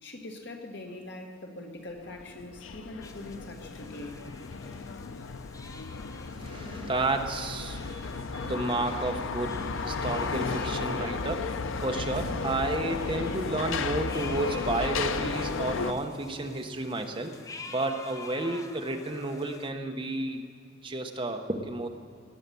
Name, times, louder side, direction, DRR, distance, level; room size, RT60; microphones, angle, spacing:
voice 1, 0.0-4.2 4.9-5.0, left 2 dB, 60° left, 2 dB, 1.6 m, -42 dB
sound 1, 2.1-15.9, left 4 dB, 80° left, 0.6 m, -34 dB
sound 2, 3.0-19.7, left 3 dB, 15° left, 0.6 m, -48 dB
voice 2, 6.3-11.5 11.8-17.3 17.7-20.4 20.8-21.9, right 2 dB, 25° right, 4 dB, 0.9 m, -32 dB
sound 3, 12.2-14.6, right 1 dB, 80° right, 0.9 m, -43 dB
19.0 x 8.0 x 6.9 m, 2.4 s
head